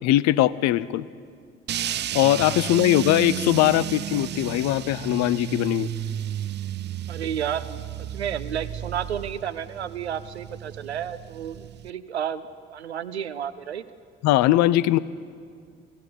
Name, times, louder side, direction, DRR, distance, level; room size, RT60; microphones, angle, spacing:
voice 1, 0.0-1.0 2.1-5.9 14.2-15.0, left 14 dB, 60° left, 18 dB, 0.7 m, -20 dB
sound 1, 1.7-11.9, right 11 dB, 35° right, 0.5 m, -33 dB
voice 2, 7.1-13.8, right 9 dB, 85° right, 13 dB, 0.7 m, -32 dB
23.5 x 15.5 x 9.8 m, 2.1 s
figure-of-eight pair, 50°, 32 cm